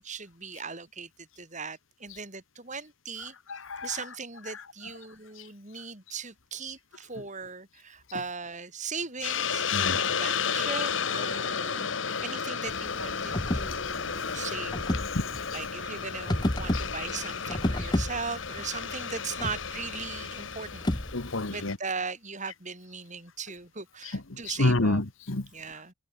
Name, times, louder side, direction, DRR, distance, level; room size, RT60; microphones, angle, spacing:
voice 1, 0.0-3.3 3.8-11.9 12.2-14.8 15.5-20.9 21.5-25.0 25.5-25.9, right 5 dB, 40° right, 7.7 m, -38 dB
voice 2, 3.5-4.0 9.7-10.0 12.1-12.2 13.8-13.9 15.1-15.2 15.5-15.6 16.7-16.8 21.1-21.8 24.5-25.4, left 2 dB, 85° left, 1.7 m, -28 dB
Hiss, 9.2-21.7, left 6 dB, 65° left, 1.5 m, -32 dB
sound 1, 12.7-21.5, left 1 dB, 20° left, 1.1 m, -33 dB
head